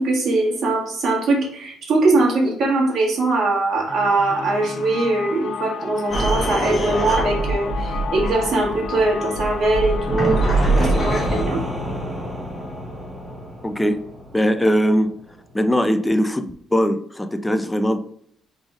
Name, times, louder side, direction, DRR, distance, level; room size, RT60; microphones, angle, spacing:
voice 1, 0.0-11.6, right 2 dB, 65° right, -3 dB, 1.8 m, -21 dB
sound 1, 3.9-13.6, left 5 dB, 75° left, 0.7 m, -33 dB
sound 2, 6.1-11.4, right 2 dB, 30° left, 1.5 m, -23 dB
sound 3, 9.8-15.5, equal, 20° right, 1.1 m, -30 dB
voice 2, 13.6-14.0 14.3-15.1 15.5-18.0, equal, 10° left, 8 dB, 0.5 m, -20 dB
4.7 x 4.0 x 2.4 m, 0.66 s
cardioid pair, 90°, 0 cm